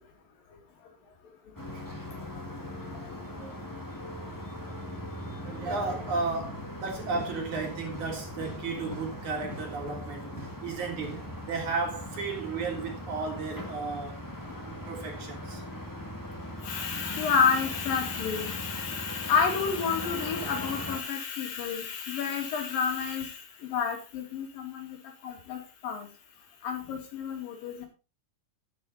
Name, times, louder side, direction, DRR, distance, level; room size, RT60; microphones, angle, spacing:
sound 1, 1.6-21.0, equal, 5° left, 1.7 m, -40 dB
voice 1, 5.4-10.3 10.6-14.2 14.7-15.6, right 4 dB, 60° right, 4.6 m, -34 dB
voice 2, 16.6-25.0 25.2-26.1 26.6-27.9, left 6 dB, 80° left, 4.2 m, -30 dB
10.5 x 10.5 x 4.1 m
omnidirectional pair, 3.9 m